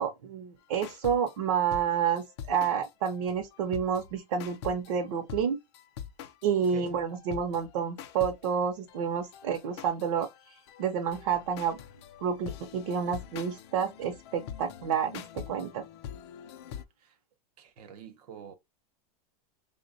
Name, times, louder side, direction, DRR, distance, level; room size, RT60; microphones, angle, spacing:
voice 1, 0.0-5.6 6.4-11.8 12.2-15.8, right 7 dB, 55° right, 0.6 m, -29 dB
sound 1, 0.8-1.3 1.7-4.1 4.4-5.0 5.3-5.5 5.7-16.8, left 9 dB, 45° left, 0.4 m, -44 dB
voice 2, 17.6-18.6, right 7 dB, 90° right, 0.9 m, -45 dB
3.2 x 2.2 x 3.8 m
supercardioid pair, 180°, 19 cm